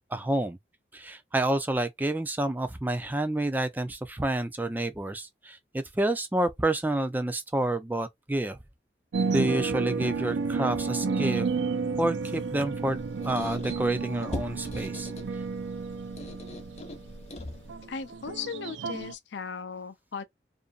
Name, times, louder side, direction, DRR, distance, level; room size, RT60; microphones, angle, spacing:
voice 1, 0.1-0.6 0.9-8.6 9.3-11.5 12.0-15.1, right 1 dB, 10° right, 0.3 m, -29 dB
sound 1, 9.1-19.1, right 4 dB, 85° right, 0.4 m, -31 dB
Squeak, 12.6-17.9, left 1 dB, 35° left, 0.7 m, -42 dB
voice 2, 17.9-20.2, left 6 dB, 80° left, 0.5 m, -37 dB
2.6 x 2.5 x 2.3 m
head